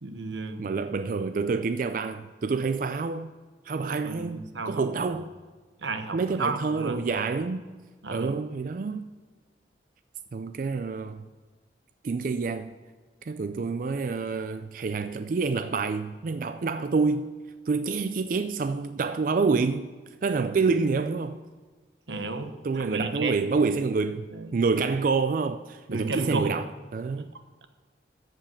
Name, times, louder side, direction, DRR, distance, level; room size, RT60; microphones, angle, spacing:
voice 1, 0.0-0.6 4.0-5.2 5.8-7.1 8.0-8.4 22.1-23.3 24.3-24.5 25.9-26.5, right 3 dB, 90° right, 1.1 m, -33 dB
voice 2, 0.6-3.3 3.7-5.3 6.1-7.7 8.1-9.1 10.3-11.2 12.0-12.7 13.3-17.3 17.7-19.9 20.2-21.4 22.6-24.3 24.5-26.7 26.9-27.3, right 4 dB, 50° right, 0.4 m, -27 dB
14.0 x 5.2 x 7.1 m
head